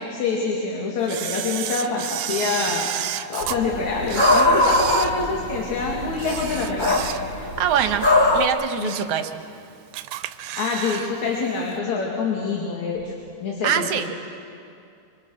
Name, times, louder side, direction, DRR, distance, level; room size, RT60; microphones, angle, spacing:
voice 1, 0.1-7.0 8.8-8.9 10.4-13.1 13.4-13.9, left 4 dB, 70° left, -2 dB, 3.6 m, -26 dB
Camera, 1.1-3.6 4.0-5.7 6.1-7.5 7.9-8.1 8.6-9.2 9.5-9.6 9.9-11.1 11.4-11.5, right 13 dB, 85° right, 2.2 m, -31 dB
sound 1, 3.4-8.5, left 2 dB, 40° left, 0.6 m, -22 dB
voice 2, 7.4-8.1 8.3-9.4 13.6-14.1, right 9 dB, 65° right, 7 dB, 1.9 m, -24 dB
26.5 x 26.0 x 6.4 m, 2.5 s
omnidirectional pair, 3.4 m